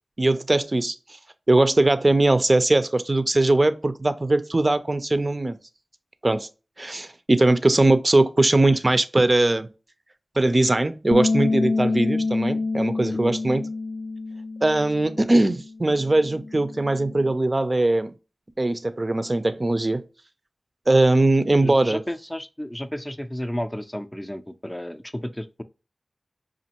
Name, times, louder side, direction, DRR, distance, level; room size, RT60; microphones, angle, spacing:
voice 1, 0.2-1.0 1.5-5.6 6.2-6.5 6.8-9.7 10.4-13.6 14.6-18.1 18.6-20.1 20.9-22.0, right 2 dB, 40° right, 0.4 m, -20 dB
Bass guitar, 11.1-17.3, left 3 dB, 70° left, 0.4 m, -27 dB
voice 2, 21.6-25.6, equal, 15° left, 0.5 m, -32 dB
5.1 x 2.5 x 2.9 m
wide cardioid pair, 55°, 0 cm